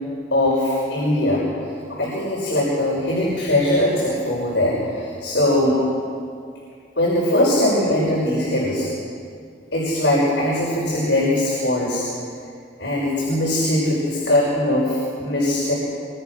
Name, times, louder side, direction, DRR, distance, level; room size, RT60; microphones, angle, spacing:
voice 1, 0.3-1.4 1.9-5.8 7.0-8.9 9.7-12.0 12.8-15.7, left 1 dB, 80° left, -5 dB, 6.0 m, -20 dB
25.0 x 24.5 x 6.3 m, 2.3 s
head